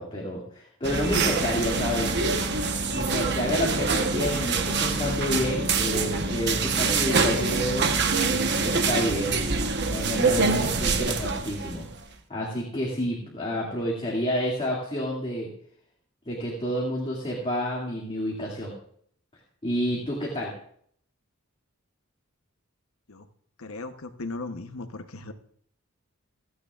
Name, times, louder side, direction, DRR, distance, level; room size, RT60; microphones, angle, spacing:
voice 1, 0.0-2.2 2.9-9.4 9.9-11.9 12.3-15.5 16.3-18.7 19.6-20.5, equal, 25° left, -4 dB, 2.4 m, -29 dB
sound 1, 0.8-12.0, right 4 dB, 55° right, 1.1 m, -25 dB
voice 2, 23.6-25.3, left 3 dB, 75° left, 8 dB, 1.0 m, -37 dB
27.5 x 9.5 x 2.5 m, 0.63 s
head